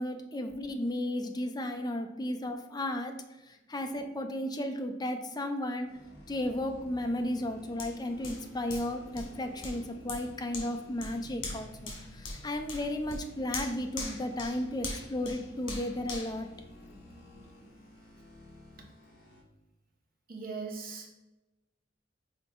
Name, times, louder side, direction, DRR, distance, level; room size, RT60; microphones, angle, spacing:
voice 1, 0.0-3.2 3.5-5.9 6.3-16.5, left 1 dB, 20° left, 5 dB, 0.6 m, -34 dB
sound 1, 5.9-19.4, left 1 dB, 60° left, 1.7 m, -52 dB
Hands, 7.8-17.3 17.8-17.9, left 3 dB, 90° left, 1.6 m, -43 dB
voice 2, 20.3-21.1, right 4 dB, 50° right, 1 dB, 1.1 m, -39 dB
5.8 x 4.2 x 3.8 m, 1.0 s
head